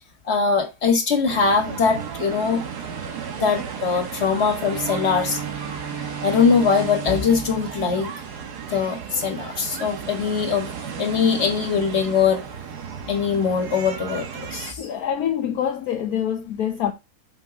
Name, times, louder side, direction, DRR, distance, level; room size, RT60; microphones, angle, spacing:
voice 1, 0.3-2.6 3.3-5.4 6.2-8.1 8.7-10.7 11.0-12.4 13.1-14.8, left 5 dB, 45° left, 1.8 m, -21 dB
sound 1, 1.3-14.7, right 7 dB, 85° right, 1.7 m, -34 dB
Bowed string instrument, 4.6-8.9, right 7 dB, 10° right, 1.2 m, -35 dB
voice 2, 14.8-16.9, left 9 dB, 70° left, 1.3 m, -25 dB
5.3 x 5.3 x 5.8 m
omnidirectional pair, 1.7 m